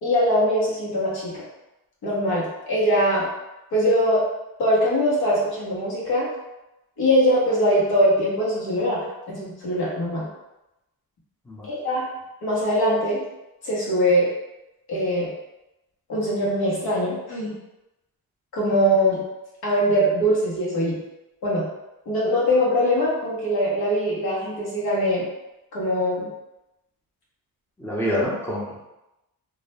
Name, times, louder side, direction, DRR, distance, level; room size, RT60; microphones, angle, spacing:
voice 1, 0.0-1.4 2.0-3.3 3.7-4.2 4.6-6.3 7.0-10.3 11.6-12.0 12.4-13.2 13.6-14.3 14.9-15.3 16.1-17.5 18.5-19.2 19.6-21.0 21.4-21.6 22.1-25.2 25.7-26.3, equal, 90° left, -6 dB, 1.0 m, -22 dB
voice 2, 27.8-28.9, equal, 5° left, -6 dB, 0.6 m, -26 dB
2.5 x 2.0 x 3.1 m, 0.95 s
wide cardioid pair, 150°, 36 cm